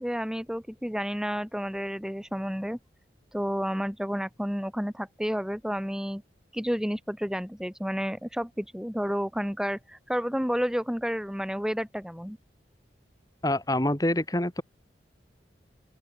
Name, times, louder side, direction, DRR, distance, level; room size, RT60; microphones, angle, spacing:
voice 1, 0.0-2.8 3.3-6.2 6.5-12.4, equal, 5° right, 2.1 m, -31 dB
voice 2, 13.4-14.6, left 1 dB, 20° left, 2.1 m, -26 dB
open air
head